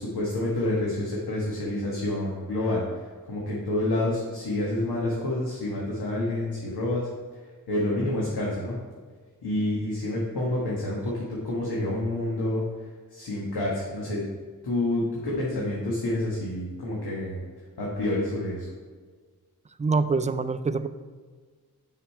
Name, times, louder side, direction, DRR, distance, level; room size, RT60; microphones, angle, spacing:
voice 1, 0.0-3.0 3.3-7.1 7.7-8.8 9.4-12.6 13.1-14.2 14.6-17.4 17.8-18.7, left 1 dB, 85° left, -4 dB, 1.3 m, -28 dB
voice 2, 19.8-20.9, right 4 dB, 20° right, 12 dB, 0.4 m, -25 dB
5.9 x 5.1 x 4.7 m, 1.5 s
cardioid pair, 55°, 38 cm